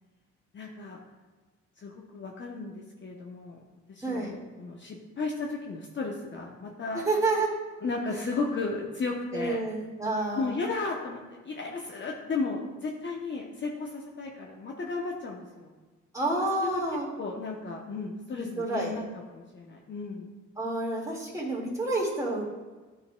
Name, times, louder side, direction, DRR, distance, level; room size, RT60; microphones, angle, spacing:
voice 1, 0.5-1.0 1.8-3.6 3.9-7.0 7.8-9.6 10.3-15.7 16.6-16.8 17.2-19.0 19.3-20.3, left 3 dB, 40° left, -1 dB, 0.8 m, -34 dB
voice 2, 4.0-4.4 6.9-7.5 9.3-10.5 16.1-17.1 18.3-19.0 20.6-22.4, right 2 dB, 10° right, -4 dB, 1.9 m, -29 dB
11.5 x 3.9 x 2.2 m, 1.3 s
cardioid pair, 90°, 30 cm